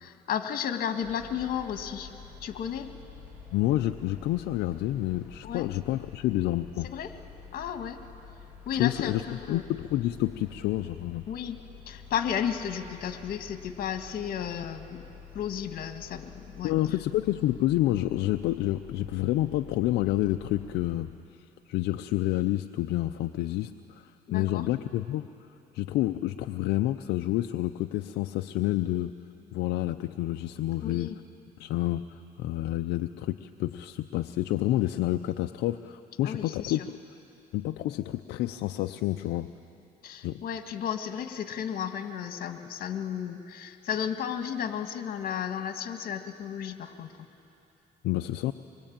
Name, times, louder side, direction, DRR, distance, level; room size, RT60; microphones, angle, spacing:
voice 1, 0.0-2.1 2.4-2.9 5.4-5.7 6.8-7.1 7.5-8.0 8.7-9.6 11.3-11.6 11.9-15.1 15.3-16.7 24.3-24.6 30.8-31.2 36.2-36.9 40.0-47.1, left 8 dB, 60° left, 7 dB, 1.8 m, -33 dB
sound 1, 1.0-21.0, left 6 dB, 5° right, 6.8 m, -49 dB
voice 2, 3.5-6.9 8.8-11.2 16.6-21.2 21.7-25.3 25.7-29.2 29.5-31.1 31.6-37.0 37.5-39.5 40.2-40.4 48.0-48.5, left 15 dB, 80° left, 7 dB, 0.6 m, -29 dB
25.0 x 22.5 x 8.9 m, 2.9 s
cardioid pair, 110°, 17 cm